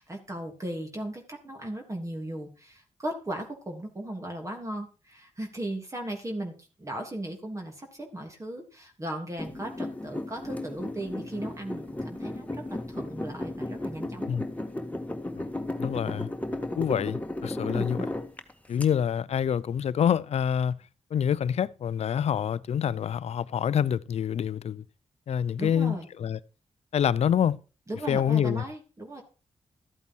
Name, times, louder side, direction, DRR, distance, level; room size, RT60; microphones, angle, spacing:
voice 1, 0.0-6.5 6.8-14.4 17.6-18.1 25.6-26.1 27.9-29.2, right 1 dB, 25° right, 3.2 m, -37 dB
sound 1, 9.4-18.8, left 1 dB, 15° left, 1.9 m, -35 dB
voice 2, 15.8-16.3 16.8-18.0 18.7-20.7 21.1-24.8 25.3-26.4 26.9-27.6 28.1-28.6, left 8 dB, 65° left, 0.7 m, -26 dB
13.5 x 8.4 x 4.6 m
supercardioid pair, 55°, 12 cm